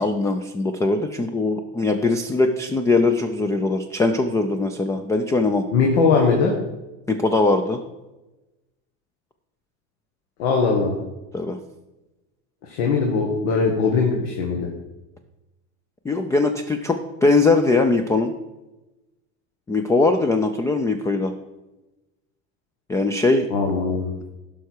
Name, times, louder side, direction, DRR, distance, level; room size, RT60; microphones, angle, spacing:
voice 1, 0.0-5.6 7.1-7.8 11.3-11.6 16.0-18.3 19.7-21.3 22.9-23.5, left 3 dB, 10° left, 7 dB, 0.3 m, -21 dB
voice 2, 5.7-6.6 10.4-10.9 12.6-14.7 23.5-24.1, left 4 dB, 80° left, 0 dB, 1.5 m, -20 dB
11.0 x 5.7 x 4.6 m, 1.1 s
supercardioid pair, 130°, 34 cm